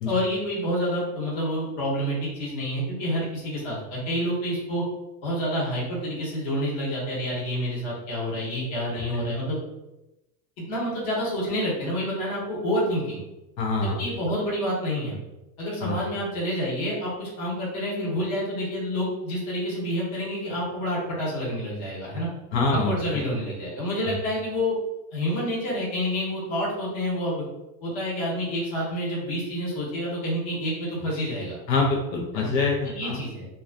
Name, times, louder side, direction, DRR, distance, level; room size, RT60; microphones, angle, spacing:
voice 1, 0.0-4.8 5.2-9.6 10.6-13.2 13.8-15.2 15.6-22.3 22.7-24.7 25.1-27.4 27.8-31.6 32.3-32.5 32.8-33.5, equal, 40° left, -6 dB, 1.1 m, -28 dB
voice 2, 13.6-14.1 15.8-16.0 22.5-23.2 24.0-24.1 31.7-33.2, left 3 dB, 80° left, -1 dB, 0.7 m, -25 dB
2.3 x 2.3 x 2.4 m, 0.96 s
supercardioid pair, 160°, 49 cm